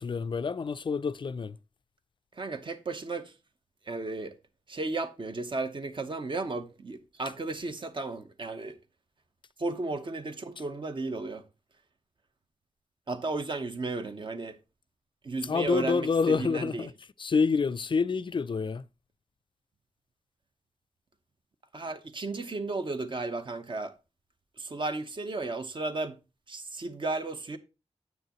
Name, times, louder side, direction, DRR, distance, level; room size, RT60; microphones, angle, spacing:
voice 1, 0.0-1.6 15.4-16.9 17.2-18.8, left 5 dB, 45° left, 0.4 m, -27 dB
voice 2, 2.4-3.3 3.9-4.3 4.7-8.8 9.6-11.4 13.1-14.6 15.2-16.9 21.7-23.9 24.6-26.2 26.5-27.6, right 3 dB, 45° right, 1.0 m, -34 dB
9.4 x 8.2 x 3.0 m
wide cardioid pair, 130°, 11 cm